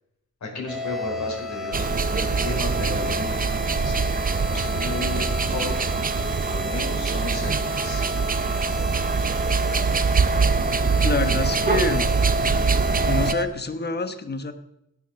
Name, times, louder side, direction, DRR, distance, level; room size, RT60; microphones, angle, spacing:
voice 1, 0.4-4.1 4.5-5.9 6.5-8.0, left 3 dB, 60° left, -1 dB, 4.9 m, -34 dB
sound 1, 0.7-13.5, left 2 dB, ahead, 1.8 m, -31 dB
sound 2, 1.7-13.3, right 5 dB, 30° right, 0.5 m, -24 dB
voice 2, 11.0-12.1 13.0-14.5, left 3 dB, 30° left, 9 dB, 1.2 m, -26 dB
16.0 x 7.0 x 6.4 m, 0.84 s
wide cardioid pair, 125°, 32 cm